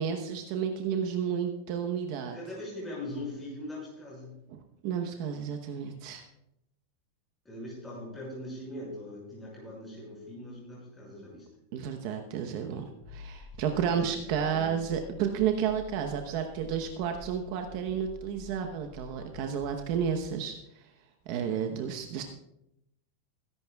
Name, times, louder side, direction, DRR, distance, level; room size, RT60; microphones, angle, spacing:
voice 1, 0.0-2.4 4.8-6.3 11.7-20.9 21.3-22.2, right 8 dB, 45° right, 5 dB, 0.9 m, -31 dB
voice 2, 2.3-4.4 7.4-11.5 13.9-14.0 14.4-14.8, left 1 dB, 10° left, -5 dB, 5.8 m, -41 dB
sound 1, 13.0-20.3, left 3 dB, 50° left, 2.4 m, -48 dB
22.5 x 11.0 x 2.3 m, 0.83 s
supercardioid pair, 170°, 0 cm